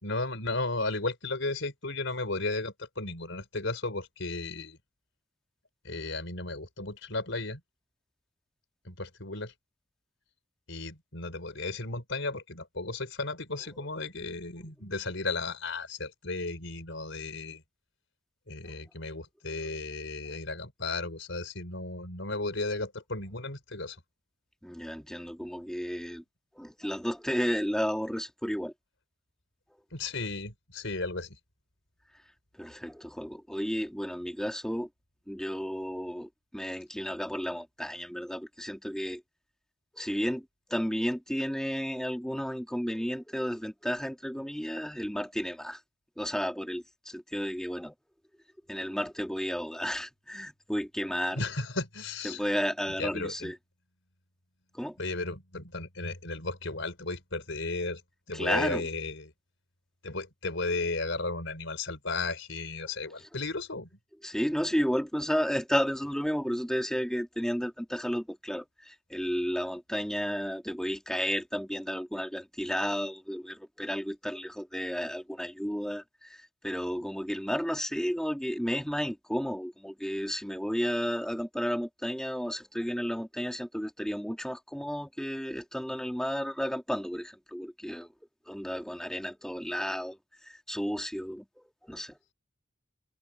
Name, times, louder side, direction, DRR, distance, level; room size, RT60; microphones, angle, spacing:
voice 1, 0.0-4.8 5.8-7.6 8.8-9.5 10.7-17.6 18.5-24.0 29.9-31.4 51.3-52.4 53.0-53.5 55.0-58.0 58.3-59.3 60.0-63.9, left 3 dB, 70° left, 4.8 m, -34 dB
voice 2, 24.6-26.2 26.6-28.7 32.5-34.9 35.3-39.2 39.9-45.8 46.2-47.9 48.7-51.4 52.2-53.6 54.7-55.0 58.3-58.9 62.8-62.9 64.2-88.1 88.5-92.2, equal, 5° left, 2.3 m, -32 dB
head